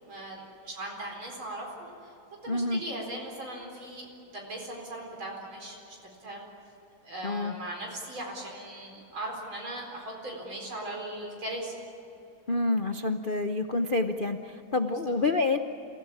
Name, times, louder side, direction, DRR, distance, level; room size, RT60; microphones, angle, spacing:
voice 1, 0.0-2.1 2.4-4.1 4.3-6.4 7.0-11.8 14.9-15.0, right 1 dB, 75° right, 0 dB, 5.2 m, -39 dB
voice 2, 2.5-2.8 7.2-7.5 12.5-15.6, left 2 dB, 60° left, 6 dB, 0.5 m, -28 dB
27.5 x 16.0 x 9.9 m, 2.8 s
omnidirectional pair, 2.2 m